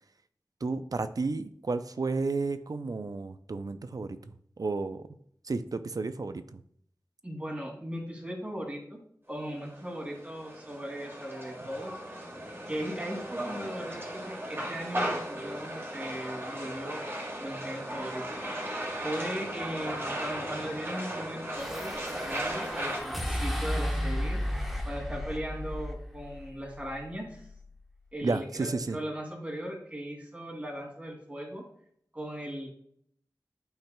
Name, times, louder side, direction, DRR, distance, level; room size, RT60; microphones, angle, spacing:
voice 1, 0.6-4.3 4.6-5.1 5.4-6.6 28.2-29.0, right 3 dB, 60° right, 11 dB, 0.4 m, -32 dB
voice 2, 7.2-9.0 9.3-11.9 12.7-17.0 17.4-24.4 24.8-27.5 28.1-31.6 32.1-32.7, equal, 20° right, -2 dB, 2.5 m, -38 dB
sound 1, 9.5-23.0, right 1 dB, 35° right, 2.4 m, -36 dB
sound 2, 21.5-27.9, equal, ahead, 1.1 m, -34 dB
8.8 x 5.6 x 2.2 m, 0.66 s
wide cardioid pair, 55°, 7 cm